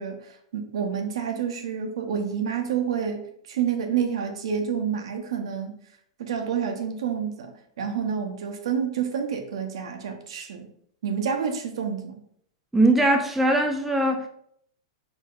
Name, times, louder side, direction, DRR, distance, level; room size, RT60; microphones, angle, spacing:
voice 1, 0.0-5.8 6.2-10.7 11.0-12.2, right 7 dB, 70° right, 0.5 m, -29 dB
voice 2, 12.7-14.3, right 1 dB, 5° right, 0.4 m, -21 dB
4.4 x 2.1 x 2.4 m
hypercardioid pair, 110°, 3 cm